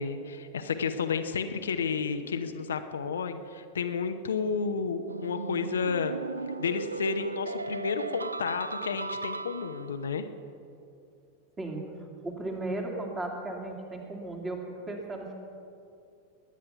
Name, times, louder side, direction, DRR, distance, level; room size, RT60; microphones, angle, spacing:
voice 1, 0.0-6.2 6.6-10.2, left 5 dB, 65° left, 7 dB, 0.8 m, -31 dB
sound 1, 5.1-10.0, right 3 dB, 80° right, 0.5 m, -36 dB
voice 2, 11.6-14.6 14.9-15.3, right 2 dB, 15° right, 1 dB, 2.6 m, -36 dB
20.0 x 9.8 x 5.8 m, 2.6 s
figure-of-eight pair, 90°, 0 cm